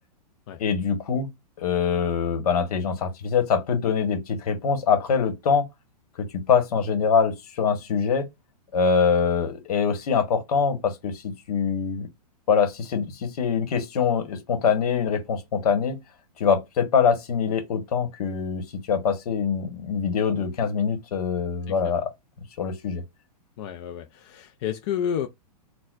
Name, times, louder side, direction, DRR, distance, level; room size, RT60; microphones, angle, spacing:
voice 1, 0.6-1.3 1.6-5.7 6.2-8.3 8.7-12.1 12.5-16.0 16.4-22.1 22.6-23.0, left 6 dB, 70° left, 1.2 m, -24 dB
voice 2, 23.6-25.3, left 9 dB, 45° left, 0.4 m, -30 dB
4.1 x 2.2 x 2.4 m
hypercardioid pair, 140°, 20 cm